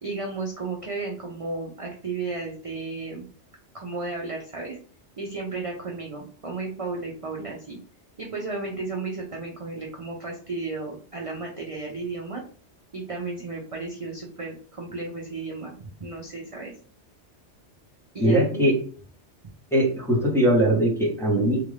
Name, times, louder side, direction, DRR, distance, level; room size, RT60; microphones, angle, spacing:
voice 1, 0.0-3.2 3.7-4.8 5.2-7.8 8.2-12.4 12.9-16.7 18.1-18.7, right 3 dB, 40° right, -1 dB, 0.6 m, -33 dB
voice 2, 18.2-18.7 19.7-21.6, right 1 dB, ahead, -3 dB, 0.8 m, -21 dB
3.8 x 2.5 x 3.2 m, 0.42 s
omnidirectional pair, 1.2 m